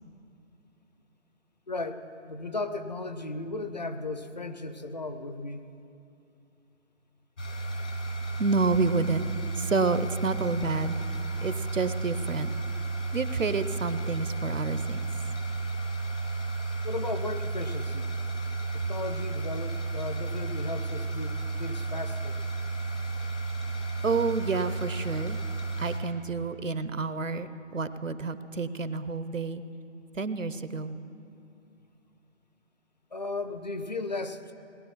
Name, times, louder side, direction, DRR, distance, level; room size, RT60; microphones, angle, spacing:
voice 1, 1.7-5.6 16.8-18.1 18.7-22.4 33.1-34.5, left 2 dB, 35° left, 9 dB, 0.6 m, -35 dB
sound 1, 7.4-26.0, right 3 dB, 70° left, 2.5 m, -33 dB
voice 2, 8.4-9.3 9.6-10.9 11.4-12.5 13.1-15.0 24.0-25.4 25.8-29.6 30.1-30.9, right 4 dB, 90° right, 13 dB, 0.9 m, -29 dB
19.0 x 9.8 x 5.9 m, 2.6 s
figure-of-eight pair, 155°, 37 cm